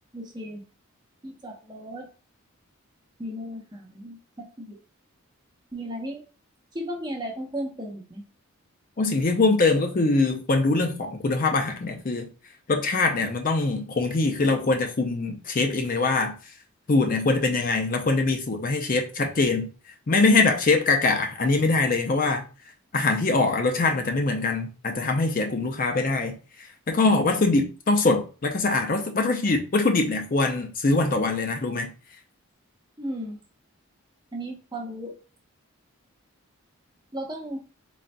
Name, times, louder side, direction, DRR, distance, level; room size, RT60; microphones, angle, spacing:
voice 1, 0.1-0.6 1.2-2.1 3.2-4.8 5.7-6.2 6.7-8.2 33.0-33.4 34.3-35.2 37.1-37.6, equal, 20° right, 0.8 m, -35 dB
voice 2, 9.0-12.3 12.7-16.5 16.9-19.7 20.1-22.5 22.9-31.9, left 3 dB, 40° left, 0.5 m, -23 dB
4.2 x 3.7 x 2.2 m
head